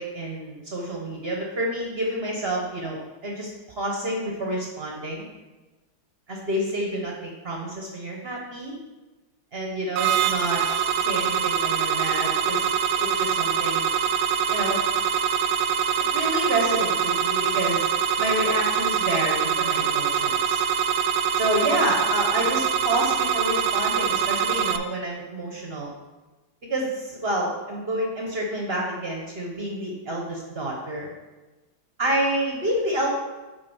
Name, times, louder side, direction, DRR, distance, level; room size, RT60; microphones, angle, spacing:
voice 1, 0.0-3.5 3.8-5.3 6.3-8.7 9.5-10.6 11.0-13.9 14.5-14.8 16.1-17.9 18.2-20.6 21.4-25.9 26.7-31.1 32.0-33.1, right 1 dB, 45° right, -1 dB, 0.8 m, -28 dB
sound 1, 10.0-24.8, right 7 dB, 75° right, 1.1 m, -24 dB
7.5 x 4.1 x 5.3 m, 1.2 s
omnidirectional pair, 2.2 m